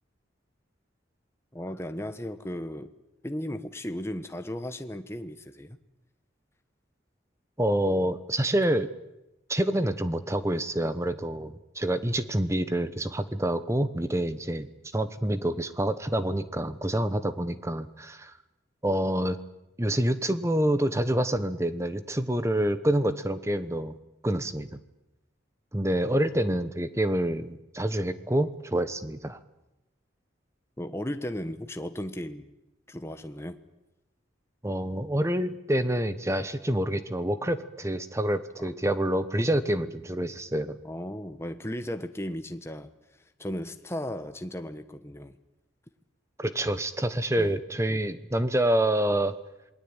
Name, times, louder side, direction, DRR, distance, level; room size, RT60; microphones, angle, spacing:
voice 1, 1.5-2.9 3.2-5.8 30.8-32.5 32.9-33.6 38.6-38.7 40.8-42.9 43.4-45.4 47.3-47.6 47.9-48.0, left 1 dB, 15° left, 8 dB, 1.2 m, -35 dB
voice 2, 7.6-8.9 9.5-18.3 18.8-19.4 19.8-24.0 24.2-24.8 25.7-29.4 34.6-40.8 46.4-49.3, right 1 dB, 15° right, 12 dB, 1.1 m, -27 dB
27.5 x 20.5 x 8.9 m, 0.93 s
head